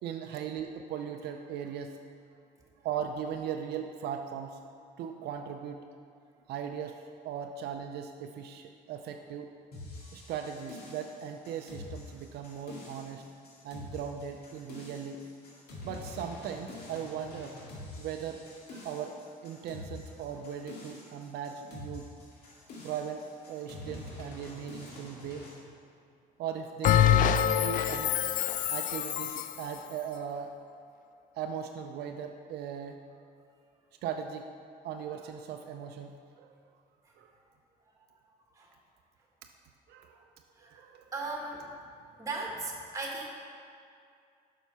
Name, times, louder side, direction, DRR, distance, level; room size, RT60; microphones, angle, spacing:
voice 1, 0.0-2.0 2.8-4.6 5.0-5.8 6.5-9.5 10.1-13.3 13.6-15.2 15.8-17.6 18.0-18.4 18.7-22.1 22.8-25.5 26.4-28.1 28.7-30.5 31.3-33.0 34.0-34.5 34.8-36.5 37.2-37.3 39.9-40.2 40.7-41.1, right 8 dB, 75° right, 4 dB, 0.5 m, -38 dB
sound 1, 9.7-25.6, left 2 dB, 70° left, 2.1 m, -46 dB
Bell, 26.8-29.6, left 10 dB, 55° left, 0.4 m, -25 dB
voice 2, 40.6-41.7 42.1-43.3, right 3 dB, 20° right, -1 dB, 1.6 m, -38 dB
7.2 x 5.8 x 5.5 m, 2.4 s
cardioid pair, 110°, 17 cm